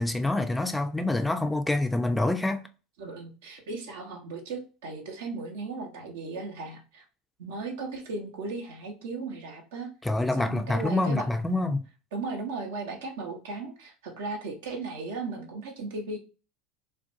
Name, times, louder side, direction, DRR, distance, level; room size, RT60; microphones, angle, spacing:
voice 1, 0.0-2.6 10.0-11.8, left 2 dB, 10° left, 0.4 m, -26 dB
voice 2, 3.0-7.0 7.4-9.9 10.4-11.3 12.1-16.2, right 3 dB, 70° right, 0.7 m, -36 dB
2.5 x 2.1 x 2.5 m
hypercardioid pair, 75°, 0 cm